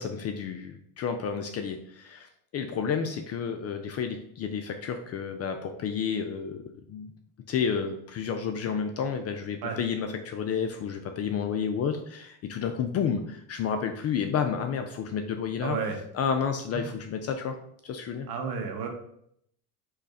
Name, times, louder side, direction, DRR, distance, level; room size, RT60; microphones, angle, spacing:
voice 1, 0.0-6.6 6.9-7.1 7.5-15.8 16.1-17.6 17.8-18.3, left 6 dB, 35° left, 6 dB, 0.4 m, -31 dB
voice 2, 15.6-16.0 16.7-16.8 18.3-18.9, right 6 dB, 50° right, 4 dB, 1.2 m, -32 dB
3.9 x 3.1 x 4.1 m, 0.70 s
supercardioid pair, 105°, 46 cm